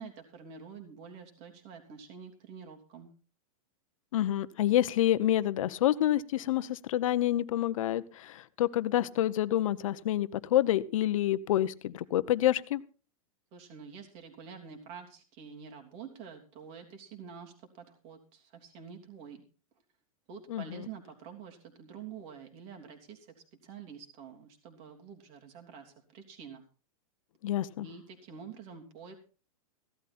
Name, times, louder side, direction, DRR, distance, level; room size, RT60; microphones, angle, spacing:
voice 1, 0.0-3.1 13.5-19.4 20.3-23.3 23.6-26.6 27.8-29.2, right 6 dB, 35° right, 3 dB, 3.1 m, -47 dB
voice 2, 4.1-12.8 20.5-20.9 27.4-27.9, left 13 dB, 65° left, 14 dB, 1.0 m, -28 dB
16.0 x 12.5 x 4.3 m, 0.37 s
supercardioid pair, 160°, 18 cm